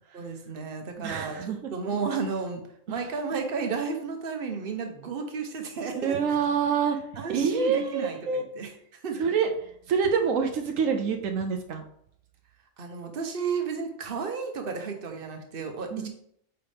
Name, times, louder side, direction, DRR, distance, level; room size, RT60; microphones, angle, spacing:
voice 1, 0.1-6.1 7.2-9.2 12.8-16.1, right 5 dB, 45° right, 4 dB, 1.1 m, -33 dB
voice 2, 1.0-1.6 2.9-3.0 5.9-7.0 7.3-8.5 9.2-9.5 9.9-11.8 15.9-16.1, right 6 dB, 80° right, 5 dB, 1.1 m, -26 dB
8.3 x 4.6 x 3.5 m, 0.69 s
omnidirectional pair, 1.3 m